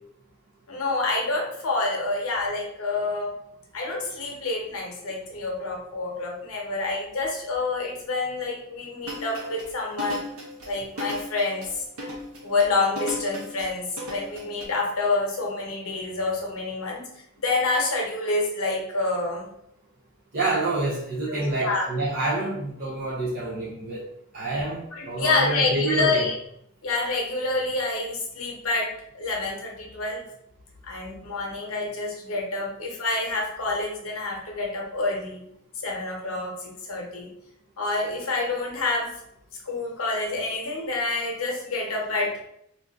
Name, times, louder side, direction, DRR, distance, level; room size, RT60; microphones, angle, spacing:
voice 1, 0.7-3.3 3.7-10.2 10.7-11.8 12.4-17.0 17.4-19.5 21.3-21.9 24.9-26.3 26.8-30.2 30.8-35.4 35.8-37.3 37.8-39.1 39.6-42.3, left 3 dB, 80° left, -1 dB, 0.8 m, -27 dB
sound 1, 9.0-14.7, left 1 dB, 80° right, 0.8 m, -36 dB
voice 2, 20.3-24.0 24.3-26.3, right 2 dB, 45° right, -8 dB, 0.6 m, -27 dB
2.6 x 2.5 x 3.5 m, 0.74 s
head